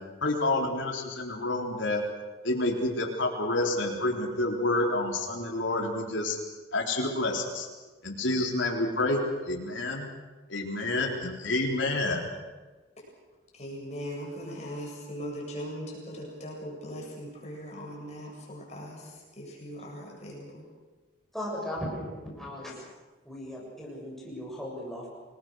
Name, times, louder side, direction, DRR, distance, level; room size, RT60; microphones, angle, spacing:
voice 1, 0.2-2.0 2.4-6.4 6.7-7.7 8.0-10.1 10.5-12.3, left 2 dB, 80° left, -1 dB, 3.9 m, -28 dB
voice 2, 13.5-20.6, equal, 35° left, -2 dB, 7.9 m, -40 dB
voice 3, 21.3-22.7 23.2-25.1, equal, ahead, -3 dB, 7.5 m, -37 dB
28.5 x 21.0 x 6.4 m, 1.3 s
head